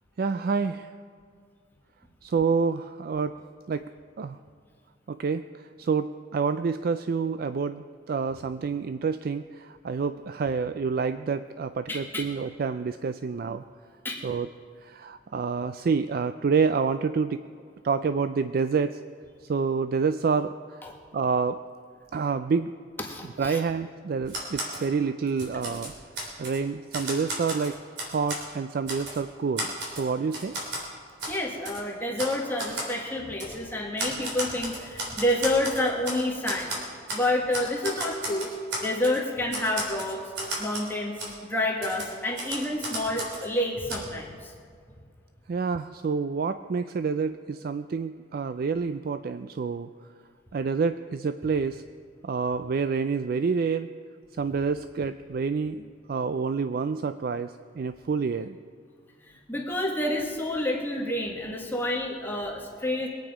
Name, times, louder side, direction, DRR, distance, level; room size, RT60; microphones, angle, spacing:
voice 1, 0.2-0.9 2.2-3.4 3.7-3.9 4.2-4.4 5.1-13.6 14.2-14.5 14.8-17.4 17.8-19.0 19.4-20.9 21.1-21.6 22.1-22.7 23.4-25.9 26.4-27.7 28.1-30.6 45.5-49.9 50.5-51.8 52.2-53.9 54.4-58.6, right 5 dB, 55° right, 11 dB, 0.3 m, -28 dB
voice 2, 11.9-12.2 14.0-14.2 20.8-20.9 23.1-23.6 31.3-36.7 37.1-38.5 38.8-40.2 40.6-41.2 41.4-44.5 59.3-63.1, left 1 dB, 10° left, -2 dB, 1.7 m, -29 dB
Typewriter, 24.3-24.9 25.3-26.6 26.9-28.5 28.9-29.2 29.6-30.9 31.2-31.4 31.7-31.8 32.2-32.3 32.6-32.9 33.4-33.6 34.0-36.2 36.5-37.3 37.5-39.2 39.5-40.9 41.2-41.3 41.8-43.5 43.9-44.0, right 1 dB, 70° right, 3.7 m, -34 dB
22.5 x 9.2 x 5.0 m, 2.1 s
head